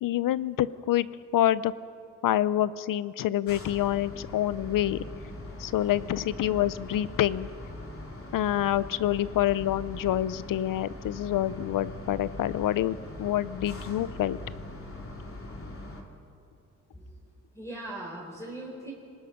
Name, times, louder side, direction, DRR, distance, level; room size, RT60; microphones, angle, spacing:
voice 1, 0.0-1.1 1.3-1.7 2.2-5.0 5.6-7.5 8.3-14.4, left 12 dB, 85° left, 17 dB, 0.7 m, -27 dB
sound 1, 3.5-16.0, left 1 dB, 45° left, 3.0 m, -41 dB
voice 2, 17.5-18.9, right 1 dB, 10° left, -3 dB, 4.0 m, -39 dB
27.0 x 19.5 x 5.9 m, 2.5 s
cardioid pair, 115°, 32 cm